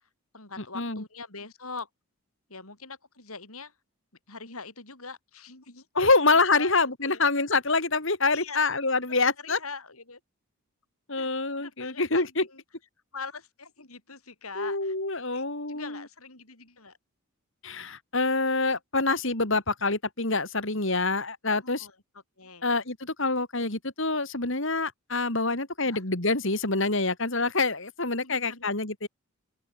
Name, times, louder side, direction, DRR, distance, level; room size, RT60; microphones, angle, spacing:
voice 1, 0.3-1.9 2.5-3.7 4.3-6.7 7.0-7.2 8.3-8.7 9.4-10.2 11.2-11.3 11.6-12.6 13.1-14.9 15.3-17.0 21.5-22.0 22.4-22.7 25.8-26.0 28.2-28.6, left 4 dB, 75° left, 8.0 m, -42 dB
voice 2, 5.9-9.6 11.1-12.4 14.5-16.0 17.6-21.9 22.6-29.1, left 3 dB, 55° left, 3.0 m, -26 dB
open air
head